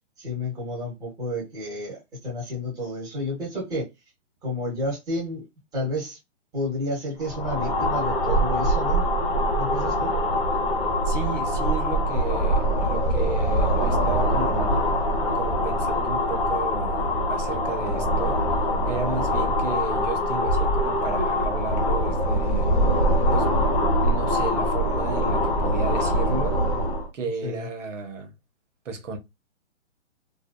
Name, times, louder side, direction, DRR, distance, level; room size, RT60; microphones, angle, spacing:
voice 1, 0.2-3.9 4.4-5.5 5.7-6.2 6.5-9.1 9.5-10.1 27.4-27.7, left 1 dB, 10° right, 1.0 m, -31 dB
sound 1, 7.2-27.1, equal, 30° left, 0.8 m, -23 dB
voice 2, 11.1-14.8 15.3-22.7 23.3-23.6 24.0-26.6 27.1-28.3 28.8-29.2, right 4 dB, 80° right, 0.8 m, -33 dB
2.6 x 2.2 x 2.2 m
hypercardioid pair, 145°, 37 cm